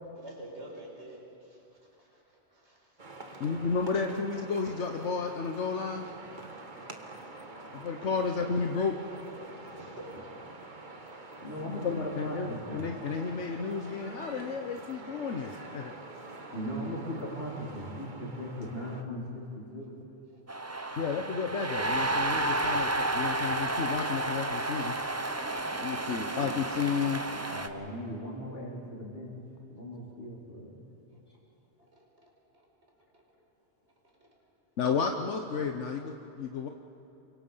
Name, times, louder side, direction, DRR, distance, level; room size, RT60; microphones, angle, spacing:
voice 1, 0.1-3.4 9.0-10.1 10.9-11.2 16.6-16.9 19.8-19.9 20.3-20.4 31.1-31.2 31.9-32.2 32.5-32.6 33.1-33.2 34.2-34.3, right 1 dB, 65° right, -2 dB, 5.1 m, -50 dB
sound 1, 3.0-19.0, right 2 dB, 40° right, 1.5 m, -46 dB
voice 2, 3.4-6.1 7.7-8.9 11.8-15.9 21.0-25.0 25.8-27.2 34.8-36.7, left 5 dB, 75° left, 4 dB, 1.3 m, -32 dB
voice 3, 11.4-12.8 16.5-20.0 27.5-29.3 29.7-30.8, equal, 55° left, -4 dB, 4.1 m, -38 dB
sound 2, 20.5-27.7, right 2 dB, 15° right, 0.8 m, -31 dB
28.0 x 24.0 x 5.6 m, 3.0 s
omnidirectional pair, 1.2 m